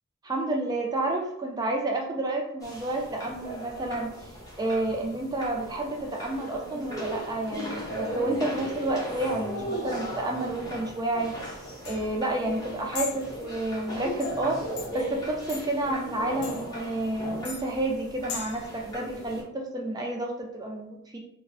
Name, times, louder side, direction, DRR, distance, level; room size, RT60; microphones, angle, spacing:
voice 1, 0.2-4.1 4.6-11.3 11.8-14.6 14.9-21.2, right 2 dB, 20° right, 1 dB, 0.3 m, -30 dB
sound 1, 2.6-19.4, equal, 15° left, 0.6 m, -37 dB
sound 2, 11.4-18.7, left 4 dB, 85° left, 0.6 m, -41 dB
2.4 x 2.0 x 2.5 m, 0.75 s
head